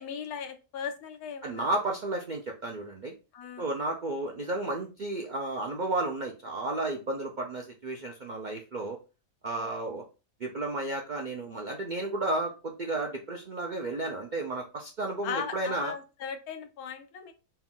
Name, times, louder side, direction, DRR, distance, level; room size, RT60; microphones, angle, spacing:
voice 1, 0.0-1.7 3.3-3.7 9.6-9.7 15.2-17.3, left 7 dB, 80° left, 7 dB, 1.2 m, -38 dB
voice 2, 1.4-3.1 3.6-9.0 9.4-10.0 10.4-15.9, right 2 dB, 80° right, 1 dB, 0.4 m, -32 dB
4.4 x 2.3 x 3.6 m, 0.32 s
omnidirectional pair, 1.6 m